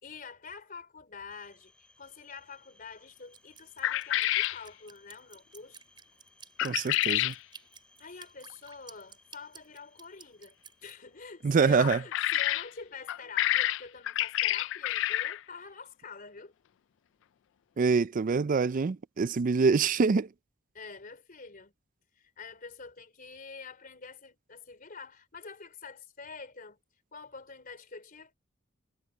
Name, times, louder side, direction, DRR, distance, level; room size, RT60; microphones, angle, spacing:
voice 1, 0.0-5.8 8.0-10.6 10.8-16.5 20.7-21.7 22.2-26.8 27.1-28.3, left 5 dB, 45° left, 3.3 m, -46 dB
sound 1, 1.3-16.2, left 2 dB, 5° left, 3.7 m, -66 dB
Drip, 3.3-10.9, right 5 dB, 25° right, 6.2 m, -52 dB
sound 2, 3.8-4.6 6.6-7.4 11.8-12.7 13.1-15.4, left 14 dB, 65° left, 0.3 m, -28 dB
voice 2, 6.6-7.3 11.4-12.0 17.8-20.3, right 5 dB, 45° right, 0.4 m, -25 dB
head